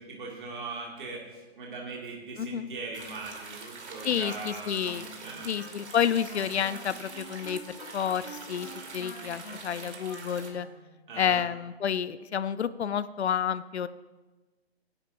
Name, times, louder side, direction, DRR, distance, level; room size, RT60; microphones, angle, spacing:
voice 1, 0.0-5.7 11.1-11.5, right 3 dB, 50° right, -2 dB, 2.2 m, -40 dB
sound 1, 2.9-10.5, right 4 dB, 85° right, 2.7 m, -44 dB
voice 2, 4.0-5.1 5.4-10.7 11.1-13.9, left 8 dB, 80° left, 15 dB, 0.6 m, -30 dB
Wind instrument woodwind instrument, 5.2-10.8, left 1 dB, 25° left, 3.9 m, -46 dB
17.5 x 10.5 x 2.6 m, 1.2 s
hypercardioid pair, 180°, 33 cm